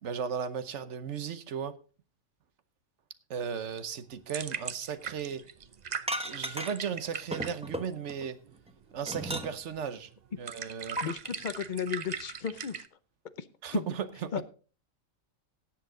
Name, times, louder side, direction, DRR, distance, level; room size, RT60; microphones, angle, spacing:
voice 1, 0.0-1.7 3.3-5.4 6.2-8.4 8.9-10.1 10.4-11.0 13.6-14.4, right 7 dB, 60° right, 1.2 m, -36 dB
sound 1, 3.6-12.9, right 7 dB, 45° right, 0.6 m, -41 dB
sound 2, 6.1-7.0 7.3-8.3 8.7-9.8 11.0-11.1, right 1 dB, 5° right, 0.9 m, -35 dB
voice 2, 11.0-12.8 13.4-13.5 13.7-13.9 14.3-14.4, left 7 dB, 45° left, 0.7 m, -34 dB
17.0 x 7.6 x 3.8 m
omnidirectional pair, 1.4 m